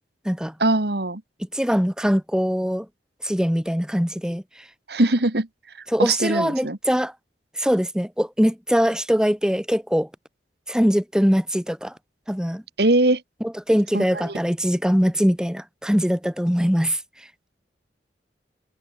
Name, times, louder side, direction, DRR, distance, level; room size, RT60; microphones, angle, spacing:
voice 1, 0.6-1.2 4.9-5.5 6.0-6.8 12.8-13.2 13.9-14.4, right 2 dB, 60° right, 1.7 m, -21 dB
voice 2, 1.5-2.9 3.2-4.4 5.9-7.1 7.6-10.1 10.7-11.9 12.3-12.6 13.7-17.0, equal, 5° right, 2.2 m, -22 dB
head